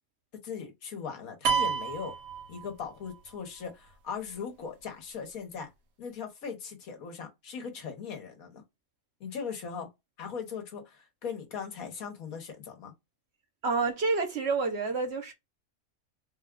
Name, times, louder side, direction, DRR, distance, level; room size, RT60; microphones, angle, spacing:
voice 1, 0.4-2.1 2.5-5.7 6.0-8.6 9.2-9.9 10.2-12.9, left 6 dB, 75° left, 1.5 m, -39 dB
sound 1, 1.5-3.2, right 6 dB, 85° right, 1.3 m, -30 dB
voice 2, 13.6-15.3, right 4 dB, 55° right, 1.0 m, -28 dB
4.0 x 2.3 x 3.7 m
omnidirectional pair, 1.5 m